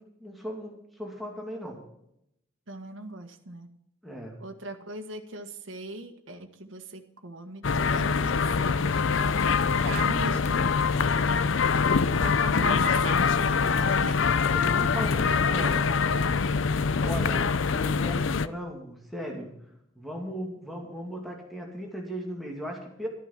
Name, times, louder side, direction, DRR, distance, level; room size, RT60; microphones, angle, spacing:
voice 1, 0.0-1.8 4.0-4.4 12.5-12.7 14.5-16.0 17.0-17.5 17.7-19.5 20.0-23.1, equal, ahead, -1 dB, 2.5 m, -37 dB
voice 2, 2.7-3.7 4.4-11.1 12.2-14.2, right 2 dB, 70° right, 4 dB, 1.6 m, -39 dB
sound 1, 7.6-18.5, left 5 dB, 65° left, 0.6 m, -24 dB
13.0 x 11.0 x 5.9 m, 0.78 s
head